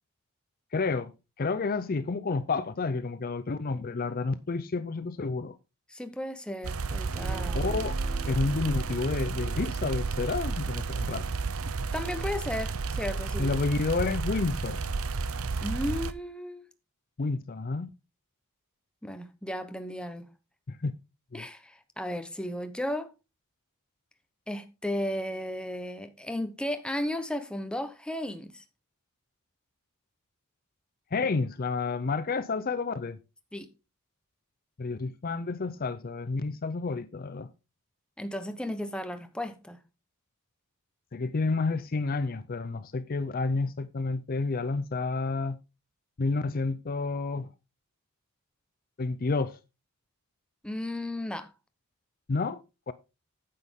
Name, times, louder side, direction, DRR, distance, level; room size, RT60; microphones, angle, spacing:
voice 1, 0.7-1.1 1.4-5.6 7.5-8.0 8.2-11.3 13.4-14.8 17.2-17.9 20.7-20.9 21.3-21.5 31.1-33.2 34.8-37.5 41.1-45.6 46.2-47.5 49.0-49.6 52.3-52.6 52.9-53.0, left 3 dB, 40° left, 0.5 m, -30 dB
voice 2, 5.9-7.6 11.9-13.5 15.6-16.7 19.0-20.3 21.3-23.1 24.5-28.6 33.5-33.7 38.2-39.8 50.6-51.5, left 1 dB, 5° left, 0.8 m, -34 dB
sound 1, 6.6-16.1, right 4 dB, 75° right, 0.7 m, -32 dB
Guitar, 7.1-14.2, right 2 dB, 45° right, 1.1 m, -48 dB
9.5 x 8.5 x 3.6 m
head